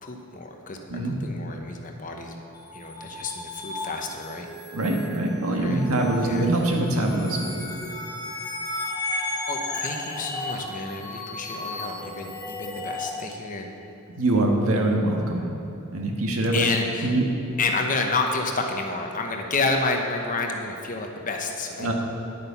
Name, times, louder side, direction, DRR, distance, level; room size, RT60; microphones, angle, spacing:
voice 1, 0.0-0.8 1.2-2.3 2.7-4.5 5.6-5.9 6.2-6.5 9.5-13.7 16.5-17.2 17.6-21.9, left 3 dB, 35° left, 3 dB, 0.9 m, -29 dB
sound 1, 2.5-13.2, left 2 dB, 15° left, 1.3 m, -34 dB
voice 2, 4.7-7.6 14.2-15.4 15.9-16.7 17.0-17.5 21.8-21.9, right 1 dB, 75° right, 1 dB, 1.5 m, -23 dB
10.0 x 8.5 x 5.7 m, 2.8 s
head